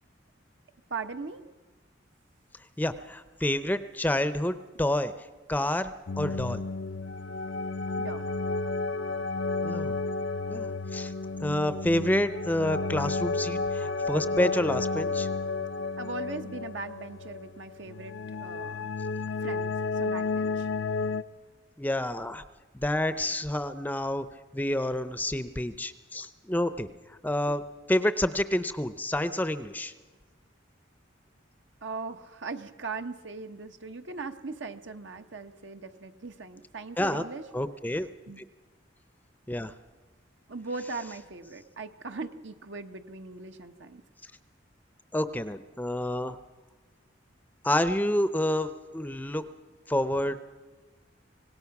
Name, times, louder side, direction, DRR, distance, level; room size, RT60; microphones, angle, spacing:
voice 1, 0.9-1.4 8.0-8.2 16.0-18.1 18.4-18.9 19.4-20.7 31.8-37.4 38.3-38.4 40.5-44.0, right 4 dB, 75° right, 7 dB, 1.1 m, -39 dB
voice 2, 2.8-5.1 5.5-6.6 9.6-10.0 10.5-11.1 11.4-15.3 21.8-22.4 22.7-24.3 24.5-26.9 27.2-27.6 27.9-29.9 37.0-37.2 37.5-38.1 39.5-39.7 45.1-46.4 47.6-49.4 49.9-50.4, left 1 dB, 10° left, 12 dB, 0.6 m, -28 dB
sound 1, 6.1-21.2, left 3 dB, 75° left, 0.6 m, -32 dB
25.5 x 18.5 x 6.0 m, 1.3 s
head